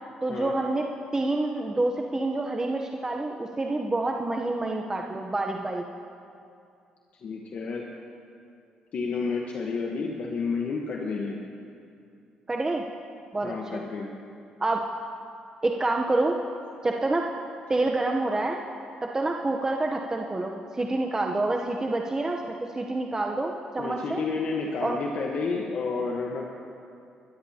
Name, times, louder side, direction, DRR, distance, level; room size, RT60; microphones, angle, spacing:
voice 1, 0.2-0.9 1.1-5.8 12.5-12.8 13.3-13.8 14.6-14.8 15.6-16.4 16.8-17.3 17.7-18.6 19.0-24.2 24.8-25.0, right 2 dB, 20° right, 1 dB, 0.8 m, -27 dB
voice 2, 7.2-7.8 8.9-11.4 13.4-14.1 23.8-26.4, left 4 dB, 60° left, 0 dB, 1.2 m, -30 dB
20.5 x 13.5 x 2.9 m, 2.5 s
cardioid pair, 75°, 3 cm